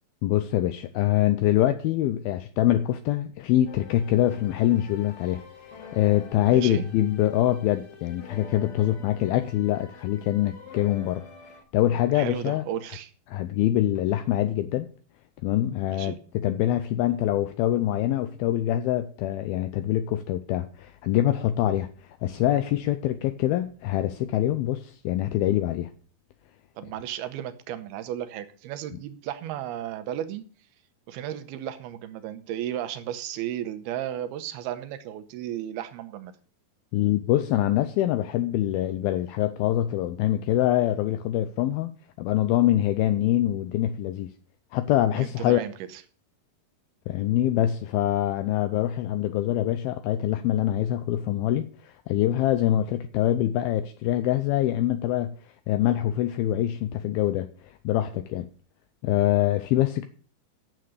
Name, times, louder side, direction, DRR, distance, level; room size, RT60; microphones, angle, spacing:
voice 1, 0.2-11.3 11.7-12.6 13.3-14.9 15.4-21.9 22.2-25.9 36.9-41.9 42.2-44.3 44.7-45.6 47.1-55.4 55.7-58.5 59.0-60.1, left 13 dB, 80° left, 2.4 m, -24 dB
sound 1, 3.7-11.6, left 5 dB, 45° left, 2.2 m, -46 dB
voice 2, 6.5-6.9 12.1-13.1 15.9-16.2 26.8-30.4 31.1-36.3 45.2-46.0, right 11 dB, 80° right, 2.8 m, -34 dB
9.2 x 7.5 x 8.1 m
omnidirectional pair, 4.6 m